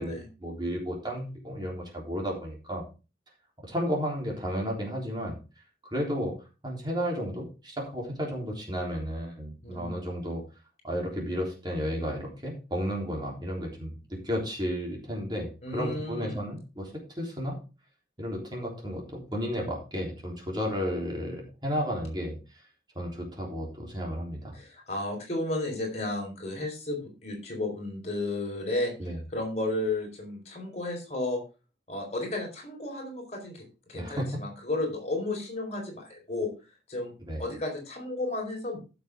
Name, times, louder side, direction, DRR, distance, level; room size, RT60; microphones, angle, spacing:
voice 1, 0.0-2.9 3.6-5.4 5.9-6.4 6.6-10.4 10.8-17.6 18.2-22.4 23.0-24.5 29.0-29.2 33.9-34.3 37.3-37.5, equal, 25° right, -1 dB, 3.6 m, -33 dB
voice 2, 9.6-10.0 15.6-16.4 24.5-31.4 31.9-36.5 36.9-37.1 37.4-38.8, left 2 dB, 35° left, 1 dB, 4.6 m, -33 dB
15.0 x 6.9 x 3.7 m, 0.31 s
head